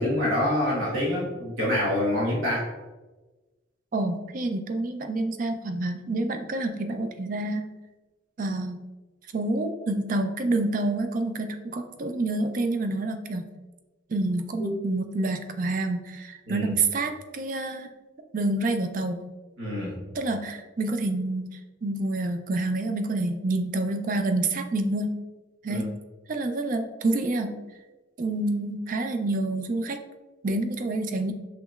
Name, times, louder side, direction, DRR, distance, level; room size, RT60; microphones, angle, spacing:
voice 1, 0.0-2.7 14.6-14.7 16.5-16.7 19.6-20.0 25.7-25.8, left 1 dB, 80° right, -6 dB, 1.4 m, -26 dB
voice 2, 3.9-7.7 8.4-8.8 9.3-13.5 14.1-17.9 18.3-19.2 20.1-25.1 25.6-25.9 26.3-27.5 28.2-30.0 30.4-31.3, right 2 dB, 40° right, 7 dB, 0.4 m, -28 dB
5.7 x 3.0 x 2.4 m, 1.2 s
head